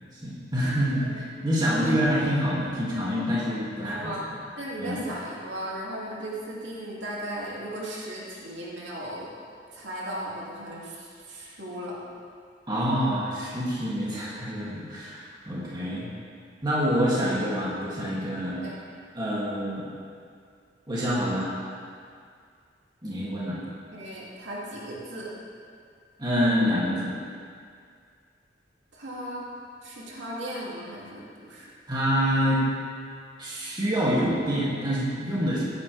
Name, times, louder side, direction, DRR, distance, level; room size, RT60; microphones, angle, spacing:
voice 1, 0.1-4.1 4.8-5.0 12.7-16.1 16.6-18.6 19.2-19.9 20.9-21.5 23.0-23.6 26.2-27.1 31.9-32.7 33.4-35.6, equal, 25° right, -7 dB, 2.5 m, -26 dB
voice 2, 0.7-1.1 1.7-2.0 3.7-4.2 4.6-9.3 9.7-12.0 18.6-18.7 23.9-25.3 28.9-29.4 29.8-31.7, right 1 dB, 80° right, -5 dB, 2.6 m, -36 dB
15.5 x 10.0 x 3.4 m, 2.2 s
head